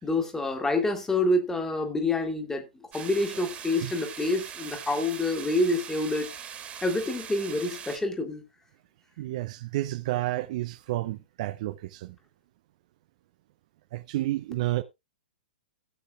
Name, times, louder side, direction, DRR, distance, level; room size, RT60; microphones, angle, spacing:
voice 1, 0.0-6.3 6.8-8.4, left 2 dB, 10° left, 1.9 m, -27 dB
sound 1, 2.9-8.0, right 8 dB, 20° right, 1.9 m, -41 dB
voice 2, 9.2-12.1 13.9-14.8, right 16 dB, 45° right, 0.6 m, -31 dB
17.0 x 8.2 x 2.3 m
figure-of-eight pair, 110°, 5 cm